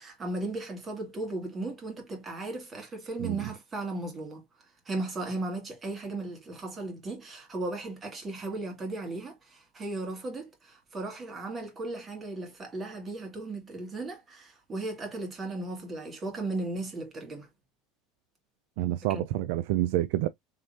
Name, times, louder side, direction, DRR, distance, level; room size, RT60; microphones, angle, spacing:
voice 1, 0.0-4.4 4.9-17.5 19.1-19.2, right 2 dB, 30° right, 2.1 m, -36 dB
voice 2, 18.8-20.3, right 15 dB, 70° right, 0.4 m, -28 dB
3.7 x 3.2 x 2.7 m
hypercardioid pair, 95°, 0 cm